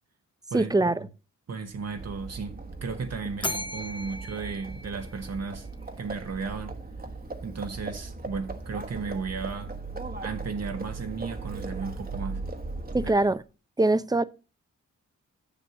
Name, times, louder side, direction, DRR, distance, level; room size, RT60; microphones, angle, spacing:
voice 1, 0.5-1.1 12.9-13.4 13.8-14.2, right 2 dB, 10° right, 0.6 m, -23 dB
voice 2, 1.5-5.7 6.0-6.8 7.4-9.8 10.2-12.5 13.0-13.1, right 5 dB, 55° right, 1.1 m, -35 dB
Livestock farm animals working animals, 1.7-13.4, right 3 dB, 30° right, 1.2 m, -38 dB
Bell, 3.4-5.7, left 1 dB, 15° left, 0.9 m, -37 dB
7.0 x 6.1 x 6.7 m
cardioid pair, 60°, 31 cm